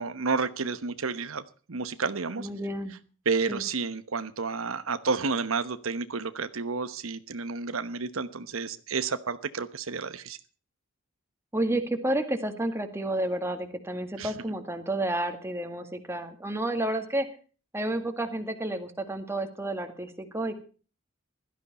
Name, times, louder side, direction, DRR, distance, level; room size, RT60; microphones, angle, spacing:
voice 1, 0.0-1.4 1.7-2.5 3.2-10.4 14.2-14.3, right 4 dB, 90° right, 12 dB, 1.0 m, -30 dB
voice 2, 2.4-2.9 3.5-3.6 11.5-17.3 17.7-20.6, right 1 dB, 15° right, 6 dB, 1.9 m, -30 dB
16.5 x 13.0 x 4.2 m, 0.38 s
head